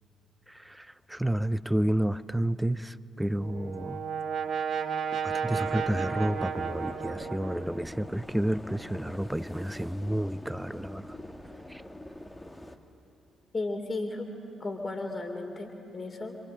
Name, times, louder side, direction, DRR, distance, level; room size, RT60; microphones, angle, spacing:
voice 1, 0.5-4.1 5.2-11.2 11.7-11.8, right 1 dB, 10° right, 0.6 m, -31 dB
Brass instrument, 3.2-8.0, right 7 dB, 50° right, 2.4 m, -33 dB
sound 1, 5.4-12.8, left 1 dB, 15° left, 1.9 m, -43 dB
voice 2, 13.5-14.3 14.6-16.4, left 2 dB, 30° left, 3.3 m, -34 dB
28.5 x 26.5 x 7.7 m
figure-of-eight pair, 45°, 0 cm